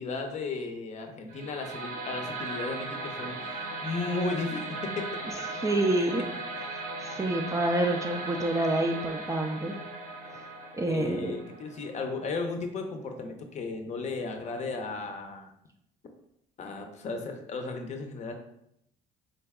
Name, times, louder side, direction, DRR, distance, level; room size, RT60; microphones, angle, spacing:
voice 1, 0.0-5.1 10.9-15.5 16.6-18.3, left 3 dB, 45° left, 4 dB, 0.6 m, -35 dB
sound 1, 1.3-12.3, right 2 dB, 55° right, 0.7 m, -38 dB
voice 2, 5.6-6.2 7.0-9.7 10.3-10.5 10.8-11.3, right 1 dB, 20° right, 3 dB, 0.4 m, -27 dB
3.8 x 2.2 x 3.5 m, 0.76 s
cardioid pair, 110°, 17 cm